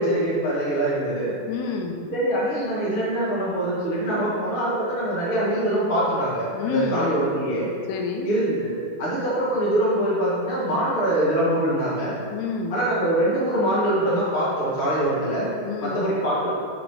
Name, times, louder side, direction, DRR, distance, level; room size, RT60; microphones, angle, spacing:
voice 1, 0.0-1.3 2.1-7.7 8.2-8.7 9.0-12.1 12.7-15.5 15.8-16.5, right 1 dB, 50° left, -8 dB, 0.6 m, -23 dB
voice 2, 1.5-2.0 6.5-7.1 7.9-8.3 12.3-12.8 15.6-16.0, left 5 dB, 90° left, 3 dB, 2.6 m, -28 dB
6.0 x 5.1 x 4.7 m, 2.1 s
omnidirectional pair, 4.4 m